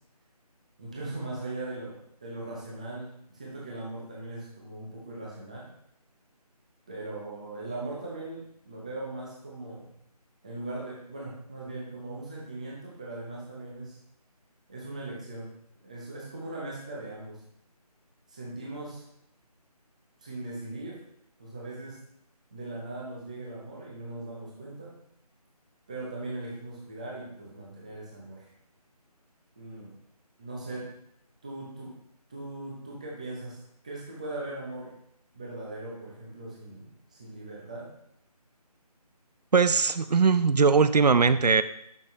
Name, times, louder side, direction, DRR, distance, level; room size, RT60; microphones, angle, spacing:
voice 1, 0.8-5.7 6.9-9.9 10.4-14.0 14.7-15.5 15.8-17.4 18.3-19.0 20.2-20.9 21.4-22.0 22.5-24.9 25.9-28.5 29.6-29.9 30.4-30.8 31.4-32.0 32.3-34.9 35.3-37.9, right 2 dB, 10° right, -4 dB, 0.9 m, -39 dB
voice 2, 39.5-41.6, right 5 dB, 85° right, 14 dB, 0.6 m, -20 dB
12.0 x 6.0 x 3.3 m, 0.74 s
figure-of-eight pair, 175°, 20 cm